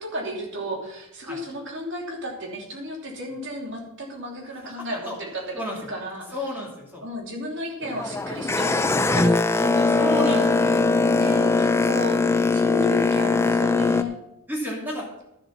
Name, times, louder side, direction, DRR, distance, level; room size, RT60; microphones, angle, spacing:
voice 1, 0.0-6.5 7.0-10.4 11.1-14.2, equal, 55° right, 0 dB, 2.9 m, -34 dB
voice 2, 4.8-5.2 5.5-5.8 6.3-7.0 10.0-10.8 14.5-15.1, equal, 10° right, -3 dB, 2.6 m, -31 dB
Boat Water vehicle, 7.8-14.0, left 3 dB, 10° left, 0.4 m, -21 dB
12.0 x 7.4 x 5.7 m, 0.89 s
head